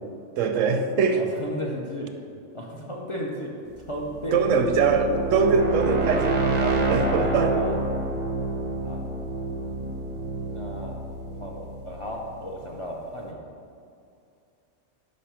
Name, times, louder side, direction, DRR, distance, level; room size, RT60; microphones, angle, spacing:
voice 1, 0.4-1.2 4.3-7.7, right 5 dB, 80° right, 6 dB, 1.0 m, -23 dB
voice 2, 1.2-2.1 2.5-4.4 6.9-7.8 8.8-9.0 10.5-11.0 11.2-13.4, equal, 40° left, -1 dB, 0.4 m, -34 dB
sound 1, 3.8-12.7, right 2 dB, 40° right, 0.6 m, -28 dB
5.5 x 5.2 x 5.7 m, 2.5 s
omnidirectional pair, 1.3 m